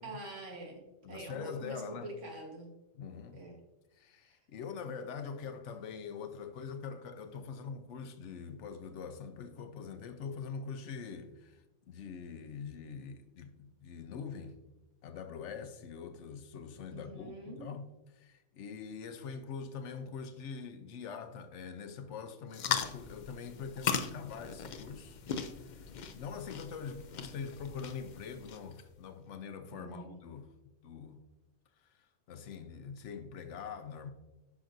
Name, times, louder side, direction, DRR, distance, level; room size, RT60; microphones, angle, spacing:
voice 1, 0.0-2.7 3.3-3.6 16.9-17.7 29.7-30.3, right 2 dB, 75° right, 1.8 m, -45 dB
voice 2, 1.0-2.1 2.9-3.4 3.9-14.5 15.0-17.8 18.1-25.2 25.6-30.5 30.8-31.2 31.8-31.9 32.3-34.1, left 6 dB, 75° left, 1.0 m, -44 dB
sound 1, 22.5-28.8, left 7 dB, 60° left, 0.5 m, -38 dB
9.6 x 6.1 x 2.6 m
omnidirectional pair, 1.3 m